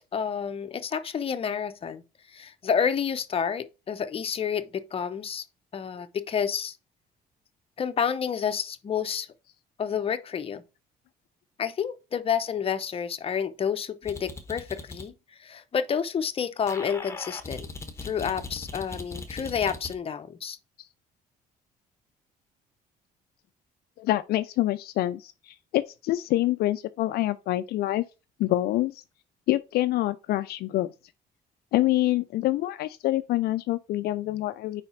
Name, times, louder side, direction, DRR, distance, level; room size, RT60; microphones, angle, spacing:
voice 1, 0.1-2.0 2.3-5.4 5.7-6.7 7.8-9.3 9.8-10.6 11.6-15.1 15.4-17.7 18.0-20.6, left 7 dB, 35° left, 0.7 m, -29 dB
sound 1, 14.0-15.1 16.7-19.9, left 3 dB, 15° left, 1.1 m, -39 dB
voice 2, 24.0-28.0 28.4-29.0 29.5-30.9 31.7-34.8, left 15 dB, 70° left, 0.4 m, -26 dB
4.9 x 4.3 x 5.6 m
cardioid pair, 110°, 17 cm